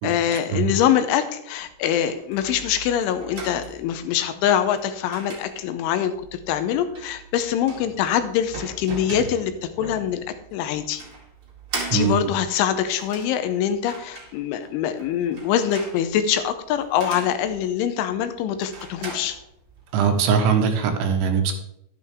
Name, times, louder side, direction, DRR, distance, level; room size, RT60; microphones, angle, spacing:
voice 1, 0.0-10.2 10.5-11.0 11.9-19.4, left 9 dB, 80° left, 9 dB, 3.1 m, -24 dB
sound 1, 1.6-20.2, right 3 dB, 45° right, 1.7 m, -40 dB
voice 2, 19.9-21.5, right 6 dB, 75° right, 5 dB, 3.3 m, -21 dB
11.5 x 10.0 x 3.5 m, 0.77 s
omnidirectional pair, 5.6 m